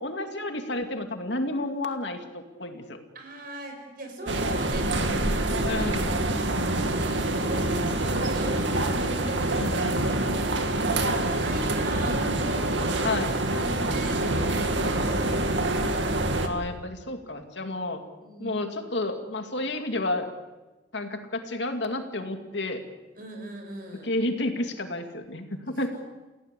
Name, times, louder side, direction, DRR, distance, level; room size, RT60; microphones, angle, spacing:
voice 1, 0.0-3.0 5.6-6.1 9.5-10.0 13.0-13.3 16.4-18.0 18.4-20.3 20.9-22.8 24.0-26.0, left 2 dB, 70° left, 5 dB, 2.5 m, -31 dB
voice 2, 3.1-5.9 6.9-8.6 9.0-9.7 10.4-12.3 13.4-15.3 18.2-18.6 23.2-24.1 25.9-26.0, right 1 dB, 50° right, 4 dB, 6.1 m, -39 dB
sound 1, 4.3-16.5, right 2 dB, 75° right, 2.3 m, -26 dB
29.5 x 16.5 x 8.4 m, 1.2 s
head